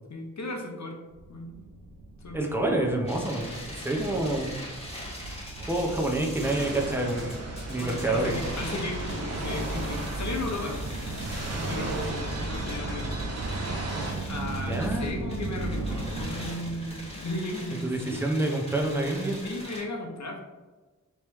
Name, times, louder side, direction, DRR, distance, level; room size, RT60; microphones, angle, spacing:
voice 1, 0.1-1.0 1.3-1.6 2.2-2.6 4.1-4.2 7.8-10.8 11.3-13.2 14.3-18.2 19.4-20.4, left 2 dB, 55° left, 1 dB, 0.8 m, -36 dB
sound 1, 1.1-18.1, right 2 dB, 80° right, 0.5 m, -37 dB
voice 2, 2.3-3.5 3.8-4.5 5.6-7.4 7.7-8.4 14.7-15.2 17.8-19.4, right 2 dB, 5° right, 0 dB, 0.7 m, -27 dB
sound 2, 3.0-19.8, equal, 20° left, 1.3 m, -42 dB
sound 3, 6.4-14.1, right 2 dB, 50° right, 0.8 m, -36 dB
3.2 x 3.1 x 3.1 m, 1.2 s
cardioid pair, 45°, 33 cm